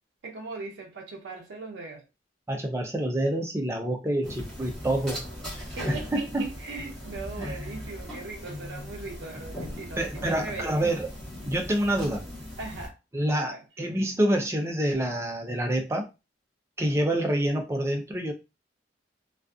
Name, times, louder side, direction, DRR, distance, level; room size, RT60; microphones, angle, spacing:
voice 1, 0.2-2.1 5.8-10.8 12.6-13.0 13.3-13.6, right 3 dB, 75° right, 0.5 m, -39 dB
voice 2, 2.5-5.2 5.9-6.5 7.4-7.5 10.0-11.1 11.4-12.2 13.1-16.1 16.8-18.3, right 1 dB, 15° right, 0.5 m, -27 dB
sound 1, 4.2-12.9, left 1 dB, 5° left, 0.9 m, -39 dB
2.4 x 2.3 x 2.4 m
head